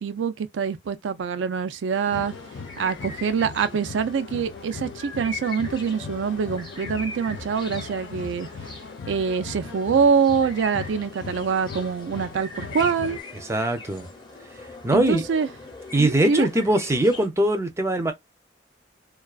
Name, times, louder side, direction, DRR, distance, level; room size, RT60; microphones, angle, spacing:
voice 1, 0.0-2.3 2.8-8.5 9.1-13.2 14.9-15.5 16.0-16.5, right 6 dB, 85° right, 0.4 m, -25 dB
sound 1, 1.9-17.3, left 3 dB, 25° left, 0.7 m, -42 dB
sound 2, 2.0-13.2, left 5 dB, 75° left, 0.4 m, -39 dB
voice 2, 13.5-14.1 14.8-15.2 15.9-18.1, right 1 dB, 15° right, 0.4 m, -21 dB
2.3 x 2.3 x 2.3 m
head